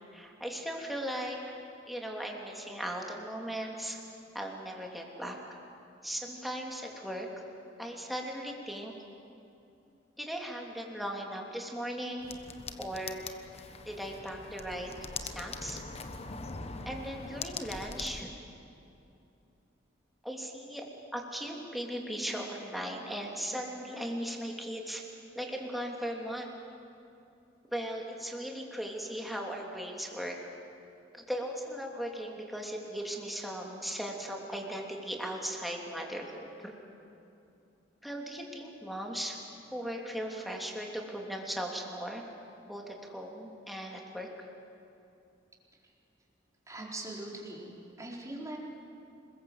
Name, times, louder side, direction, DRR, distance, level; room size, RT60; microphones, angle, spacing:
voice 1, 0.1-1.4 1.9-4.0 4.3-5.4 6.0-7.3 7.8-8.9 10.2-12.3 12.8-13.3 13.8-14.9 15.2-15.8 16.8-18.3 20.2-25.0 25.3-26.5 27.7-30.4 31.1-36.7 38.0-39.4 39.7-42.2 42.6-44.5, equal, ahead, 0 dB, 3.0 m, -38 dB
sound 1, 12.2-18.2, left 4 dB, 35° left, 1.2 m, -42 dB
voice 2, 46.7-47.7 48.0-48.6, right 2 dB, 20° right, -3 dB, 4.3 m, -41 dB
27.5 x 21.5 x 8.1 m, 2.7 s
head